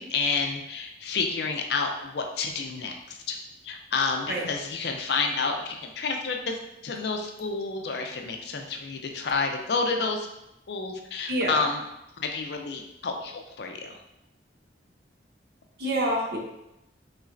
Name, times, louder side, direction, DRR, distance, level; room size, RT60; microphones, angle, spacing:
voice 1, 0.0-3.4 3.6-10.3 10.7-11.8 12.2-14.0, left 4 dB, 70° left, 4 dB, 0.5 m, -30 dB
voice 2, 11.3-11.6 15.8-16.4, right 1 dB, 65° right, -1 dB, 0.8 m, -26 dB
4.3 x 3.1 x 2.5 m, 0.86 s
head